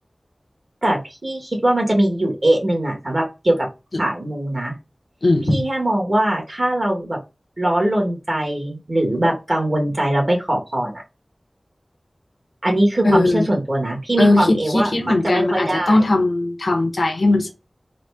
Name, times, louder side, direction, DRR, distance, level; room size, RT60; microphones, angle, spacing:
voice 1, 0.8-3.7 4.0-4.8 5.5-7.2 7.6-11.0 12.6-16.0, right 1 dB, 50° right, 1.4 m, -21 dB
voice 2, 5.2-5.6 13.0-13.5 14.2-17.5, left 2 dB, 85° left, 0.8 m, -18 dB
4.0 x 2.1 x 3.4 m
wide cardioid pair, 55°, 0 cm